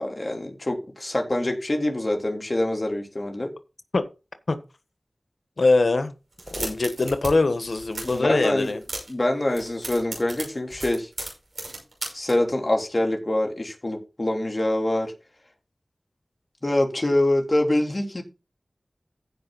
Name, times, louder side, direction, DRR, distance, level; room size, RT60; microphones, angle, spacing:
voice 1, 0.0-3.5 8.0-8.8 9.1-11.1 12.1-15.1 16.6-18.2, left 1 dB, 45° left, 3.5 m, -25 dB
voice 2, 5.6-6.1 6.5-8.8, left 3 dB, 80° left, 1.3 m, -22 dB
sound 1, 6.3-7.3 7.6-8.2 8.6-9.2 9.5-12.3, right 2 dB, 85° right, 5.8 m, -35 dB
15.5 x 5.3 x 4.1 m
wide cardioid pair, 40°, 0 cm